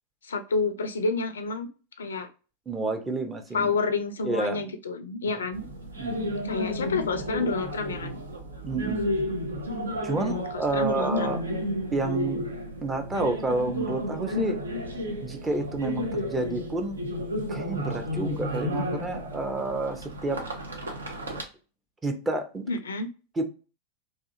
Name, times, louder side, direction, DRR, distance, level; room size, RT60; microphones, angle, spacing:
voice 1, 0.2-1.7 2.0-2.3 3.5-5.6 6.4-8.2 10.2-11.3 22.7-23.1, left 4 dB, 70° left, 0.3 m, -29 dB
voice 2, 2.7-3.7 4.2-4.7 6.0-6.4 8.6-9.0 10.0-11.4 11.9-12.4 12.8-14.6 15.2-17.0 17.5-20.4 22.0-22.7 23.4-23.5, right 3 dB, 15° right, 0.5 m, -29 dB
sound 1, 5.5-21.4, left 1 dB, 75° right, 0.5 m, -32 dB
2.6 x 2.4 x 2.5 m
figure-of-eight pair, 90°, 0 cm